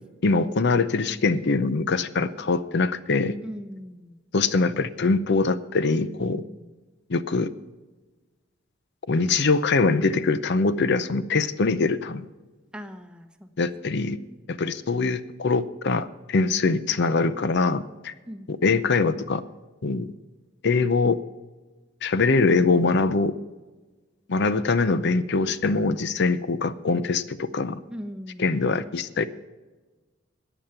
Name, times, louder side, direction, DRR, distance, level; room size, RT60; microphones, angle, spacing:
voice 1, 0.2-3.4 4.3-6.4 7.1-7.5 9.1-12.3 13.6-14.2 14.5-18.1 18.6-19.4 19.8-20.1 20.6-21.2 22.0-23.3 24.3-27.8 28.4-29.3, left 3 dB, 60° left, 14 dB, 0.7 m, -23 dB
voice 2, 3.4-4.2 6.2-6.7 12.7-13.5 13.9-14.4 18.3-18.7 27.9-28.8, equal, 5° right, 8 dB, 0.9 m, -40 dB
14.0 x 9.1 x 5.7 m, 1.2 s
head